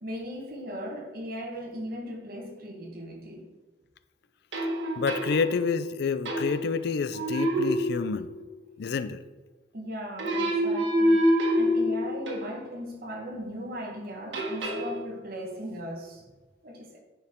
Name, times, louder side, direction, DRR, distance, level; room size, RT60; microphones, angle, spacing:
voice 1, 0.0-3.5 9.7-16.3 16.6-17.0, equal, 55° right, 1.5 m, -38 dB
sound 1, 4.5-5.8 6.3-6.8 7.1-8.5 10.2-12.7 14.3-15.0, equal, 80° right, 1.5 m, -26 dB
voice 2, 5.0-8.3 8.8-9.2, left 5 dB, 60° left, 0.4 m, -28 dB
10.5 x 4.7 x 3.7 m
head